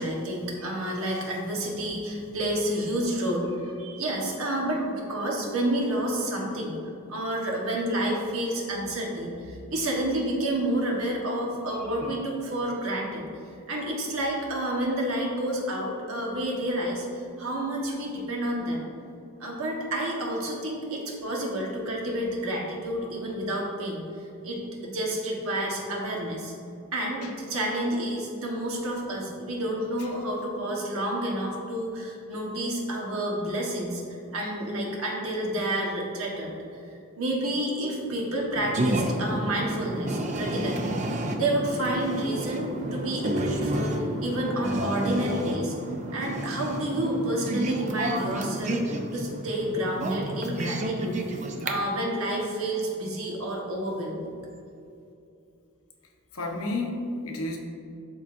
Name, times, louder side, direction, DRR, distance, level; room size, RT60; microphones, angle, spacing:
voice 1, 0.0-6.7 7.1-13.2 13.7-18.8 19.4-24.0 24.4-26.5 26.9-36.5 37.2-41.0 41.3-45.8 46.1-54.3, right 1 dB, 75° right, -2 dB, 1.3 m, -29 dB
sound 1, 38.6-51.7, right 1 dB, 30° right, 0.4 m, -30 dB
voice 2, 56.3-57.6, left 2 dB, 80° left, 1 dB, 0.9 m, -32 dB
11.5 x 3.8 x 2.6 m, 2.6 s
head